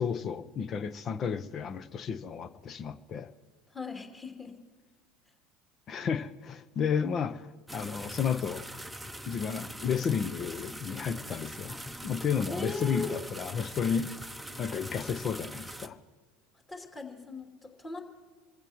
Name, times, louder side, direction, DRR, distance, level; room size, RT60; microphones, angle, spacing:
voice 1, 0.0-3.3 5.9-7.5 7.7-8.7 9.3-14.1 14.6-16.0, left 7 dB, 40° left, 15 dB, 0.9 m, -32 dB
voice 2, 3.7-4.5 12.5-13.2 16.7-18.0, left 2 dB, 20° left, 3 dB, 3.1 m, -39 dB
sound 1, 7.7-15.9, right 1 dB, ahead, 1.0 m, -42 dB
27.0 x 16.0 x 3.1 m, 1.5 s
figure-of-eight pair, 75°, 0 cm